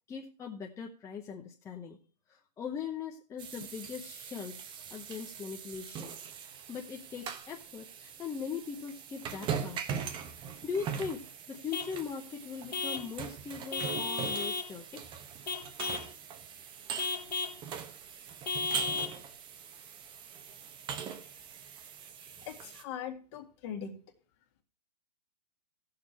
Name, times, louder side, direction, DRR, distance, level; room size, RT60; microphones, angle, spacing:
voice 1, 0.1-2.0 2.3-6.2 6.7-9.8 10.6-15.0, left 6 dB, 15° left, 0 dB, 0.9 m, -40 dB
sound 1, 3.4-22.8, right 7 dB, 25° right, 1.0 m, -41 dB
Vehicle horn car horn honking / Truck, 11.7-12.0 12.7-13.1 13.7-14.7 15.5-16.1 17.0-17.6 18.5-19.2, left 4 dB, 90° left, 1.6 m, -34 dB
voice 2, 22.5-23.9, left 8 dB, 40° left, 5 dB, 2.0 m, -40 dB
16.0 x 6.8 x 4.4 m, 0.39 s
hypercardioid pair, 135°, 21 cm